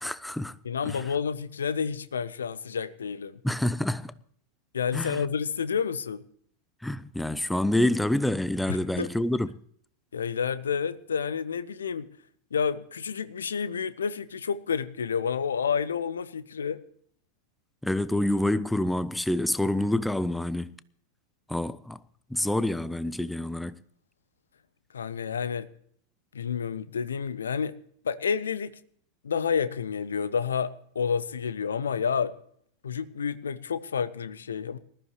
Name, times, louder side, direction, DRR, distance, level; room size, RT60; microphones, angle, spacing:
voice 1, 0.0-0.5 0.8-1.0 3.4-4.1 4.9-5.2 6.8-9.5 17.8-20.8 21.5-22.0 22.3-23.8, left 1 dB, 5° left, 0.6 m, -27 dB
voice 2, 0.6-3.4 4.7-6.2 8.7-9.1 10.1-12.1 12.5-16.8 24.9-25.7 26.3-27.7 28.0-28.8 29.2-32.3 32.8-34.8, left 6 dB, 70° left, 0.8 m, -29 dB
20.0 x 13.5 x 3.1 m
figure-of-eight pair, 90°, 0 cm